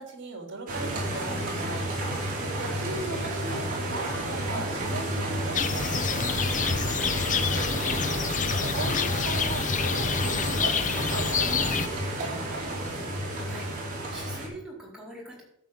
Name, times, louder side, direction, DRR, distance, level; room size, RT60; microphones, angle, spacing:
voice 1, 0.0-1.8 2.1-7.3 8.7-12.7, right 3 dB, 60° right, 3 dB, 3.1 m, -39 dB
sound 1, 0.7-14.5, right 1 dB, 40° right, 4.6 m, -31 dB
sound 2, 5.5-11.9, left 6 dB, 35° left, 0.7 m, -28 dB
voice 2, 13.3-15.4, right 1 dB, 5° right, -4 dB, 4.4 m, -43 dB
13.5 x 5.6 x 7.5 m, 0.70 s
head